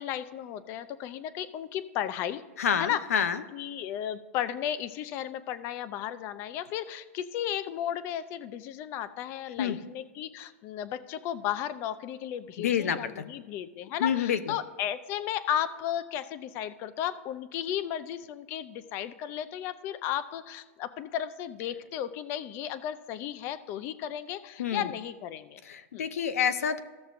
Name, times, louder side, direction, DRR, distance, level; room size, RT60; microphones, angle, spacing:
voice 1, 0.0-2.4 2.8-3.0 3.5-25.6 25.9-26.1, left 10 dB, 30° left, 13 dB, 0.5 m, -34 dB
voice 2, 2.6-3.4 9.6-9.8 12.6-13.3 14.0-14.4 24.6-24.9 25.6-26.8, left 8 dB, 85° left, 10 dB, 0.8 m, -28 dB
15.5 x 6.9 x 2.5 m, 1.3 s
hypercardioid pair, 155°, 8 cm